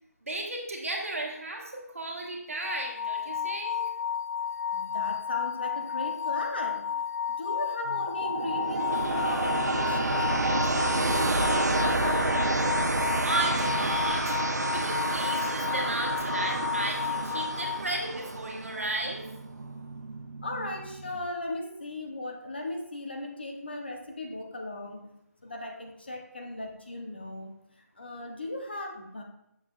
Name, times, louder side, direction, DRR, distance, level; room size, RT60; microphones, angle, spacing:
voice 1, 0.2-3.8 13.2-14.4 14.7-19.3, right 2 dB, 55° right, 0 dB, 1.4 m, -34 dB
sound 1, 2.6-17.8, left 7 dB, 70° left, 0.6 m, -32 dB
voice 2, 4.7-6.9 7.4-10.0 10.3-12.2 20.4-25.1 25.4-27.5 28.0-29.2, left 2 dB, 35° left, 2 dB, 0.8 m, -37 dB
sound 2, 7.9-21.2, right 2 dB, 85° right, 0.9 m, -29 dB
7.3 x 7.1 x 2.4 m, 0.81 s
figure-of-eight pair, 180°, 9 cm